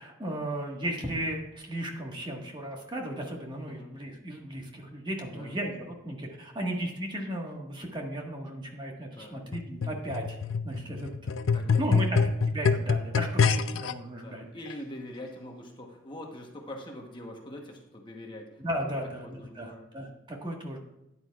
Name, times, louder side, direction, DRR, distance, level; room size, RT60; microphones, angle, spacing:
voice 1, 0.0-10.4 10.6-11.1 11.8-14.4 18.6-20.8, right 1 dB, 25° right, 0 dB, 1.6 m, -35 dB
voice 2, 9.1-9.5 11.5-11.8 12.1-12.2 14.2-18.6 19.2-19.9, left 1 dB, 25° left, 1 dB, 1.1 m, -43 dB
sound 1, 9.5-13.9 14.7-14.8, left 5 dB, 80° left, 0.5 m, -26 dB
13.0 x 9.8 x 2.4 m, 0.92 s
head